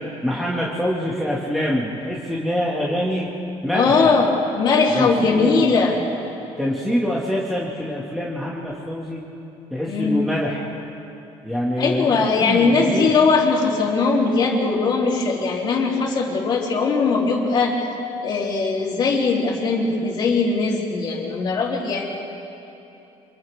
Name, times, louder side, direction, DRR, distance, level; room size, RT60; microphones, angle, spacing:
voice 1, 0.2-3.3 3.6-4.1 4.9-5.7 6.6-9.2 9.7-10.8 11.4-13.1, equal, ahead, -5 dB, 2.1 m, -25 dB
voice 2, 3.7-6.0 9.9-10.2 11.8-17.9 18.2-22.0, left 4 dB, 45° left, -2 dB, 3.5 m, -20 dB
29.5 x 26.5 x 3.6 m, 2.9 s
cardioid pair, 140°, 11 cm